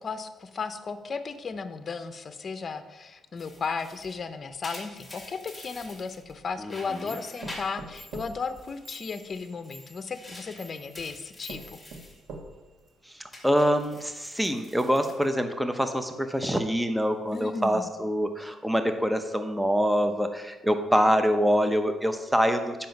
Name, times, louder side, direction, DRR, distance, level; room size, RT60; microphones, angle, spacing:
voice 1, 0.0-11.8 17.3-17.9 20.9-21.0, left 5 dB, 40° left, 10 dB, 0.7 m, -35 dB
sound 1, 3.4-6.4 6.6-8.2 8.6-12.2 12.5-12.9 13.3-15.9 16.2-16.6 17.2-17.8, left 1 dB, 10° left, 2.2 m, -47 dB
sound 2, 5.7-6.6 7.4-9.4 10.4-10.5 11.0-11.1 11.5-12.8 13.3-13.4 13.7-13.8, right 3 dB, 80° right, 1.3 m, -44 dB
voice 2, 6.6-7.1 13.1-22.9, equal, 5° right, 7 dB, 0.7 m, -25 dB
Clock, 7.1-12.7, equal, 60° right, 3.0 m, -52 dB
7.6 x 5.7 x 5.2 m, 1.1 s
cardioid pair, 90°, 0 cm